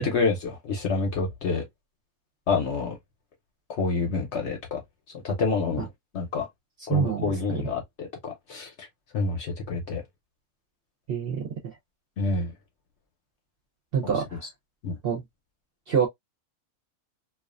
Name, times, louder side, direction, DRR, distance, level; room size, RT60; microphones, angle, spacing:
voice 1, 0.0-1.6 2.5-3.0 3.7-4.8 5.2-5.9 6.1-6.5 6.9-8.7 9.1-10.0 12.2-12.5 14.0-14.1 14.8-15.0, left 4 dB, 60° left, 0.8 m, -27 dB
voice 2, 6.9-7.3 11.1-11.7 13.9-14.4 15.0-15.2 15.9-16.1, right 7 dB, 55° right, 0.7 m, -26 dB
2.4 x 2.3 x 2.3 m
omnidirectional pair, 1.5 m